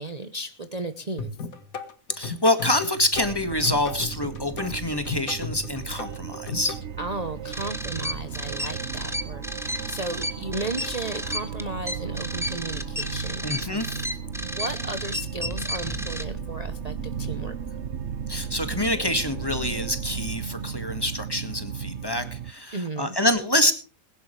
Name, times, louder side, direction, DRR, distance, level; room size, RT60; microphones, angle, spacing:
voice 1, 0.0-1.4 7.0-13.4 14.4-17.8 22.7-23.2, right 2 dB, 30° right, 9 dB, 1.0 m, -35 dB
sound 1, 1.2-6.8, left 5 dB, 90° left, 2.2 m, -35 dB
voice 2, 2.1-6.8 13.4-14.0 18.3-23.7, left 1 dB, 15° left, 8 dB, 2.0 m, -26 dB
sound 2, 3.1-22.5, right 7 dB, 55° right, 1.2 m, -35 dB
sound 3, 7.5-16.2, equal, ahead, 1.4 m, -32 dB
21.5 x 11.0 x 3.3 m, 0.36 s
omnidirectional pair, 1.4 m